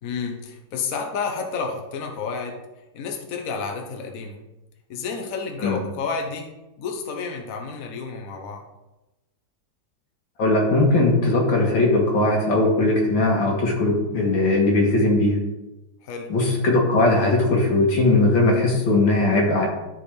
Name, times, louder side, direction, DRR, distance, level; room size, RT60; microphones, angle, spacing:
voice 1, 0.0-2.6 2.9-4.4 4.9-8.6 16.0-16.3, left 5 dB, 55° left, 2 dB, 1.2 m, -30 dB
voice 2, 10.4-15.4 16.3-19.7, left 2 dB, 75° left, 0 dB, 2.2 m, -19 dB
12.5 x 4.4 x 3.3 m, 1.0 s
omnidirectional pair, 2.1 m